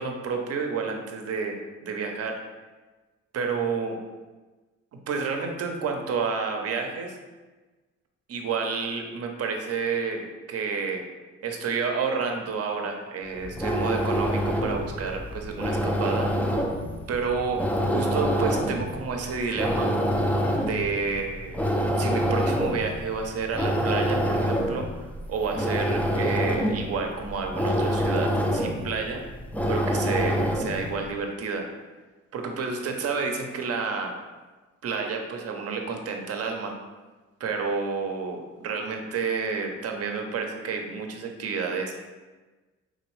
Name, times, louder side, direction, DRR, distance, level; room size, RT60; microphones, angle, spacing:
voice 1, 0.0-2.4 3.3-4.0 4.9-7.2 8.3-11.0 11.4-16.3 17.1-17.7 17.9-19.9 20.6-21.6 22.0-29.2 29.7-31.7 32.3-34.1 34.8-36.8 37.4-42.0, right 5 dB, 55° right, 3 dB, 0.7 m, -30 dB
sound 1, 13.3-30.9, equal, 5° left, 0.4 m, -26 dB
3.8 x 3.0 x 3.1 m, 1.2 s
cardioid pair, 90°, 30 cm